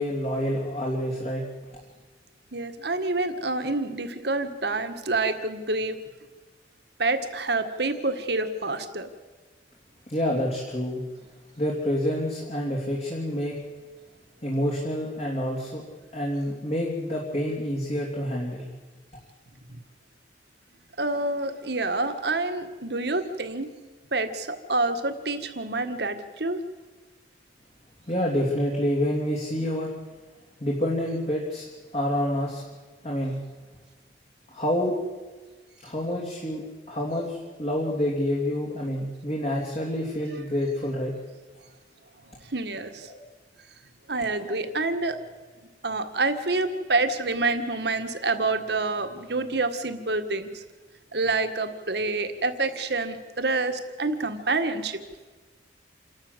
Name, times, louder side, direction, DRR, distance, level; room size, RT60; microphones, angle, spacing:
voice 1, 0.0-1.4 10.1-11.0 11.6-13.6 14.4-15.8 16.1-18.6 28.1-29.9 30.6-31.7 31.9-32.6 33.0-33.4 34.5-35.0 35.8-41.1 43.0-43.2, left 1 dB, 35° left, -3 dB, 3.1 m, -28 dB
voice 2, 2.5-6.0 7.0-9.1 19.7-19.8 21.0-23.7 24.1-26.6 42.2-43.1 44.1-45.2 45.8-50.6 51.1-55.0, right 3 dB, 65° right, 8 dB, 1.7 m, -27 dB
28.0 x 12.5 x 8.1 m, 1.3 s
head